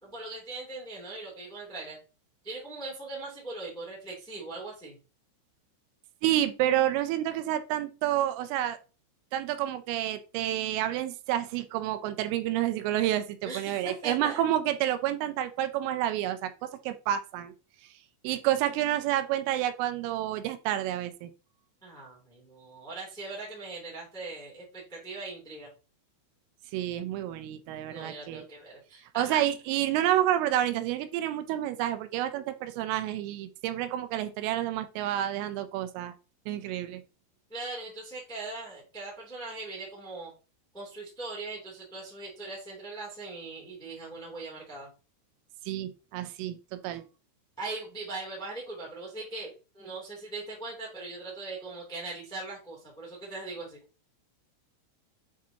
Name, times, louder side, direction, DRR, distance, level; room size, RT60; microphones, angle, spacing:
voice 1, 0.0-2.0 2.4-5.0 13.4-14.4 21.8-25.7 27.9-29.4 37.5-40.3 40.7-44.9 46.8-47.0 47.6-53.8, right 3 dB, ahead, -3 dB, 0.9 m, -40 dB
voice 2, 6.2-8.8 9.3-17.5 18.2-21.3 26.7-28.5 29.2-36.1 36.5-37.0 45.7-47.0, right 12 dB, 85° right, 9 dB, 3.1 m, -29 dB
8.1 x 5.0 x 2.8 m, 0.33 s
omnidirectional pair, 5.8 m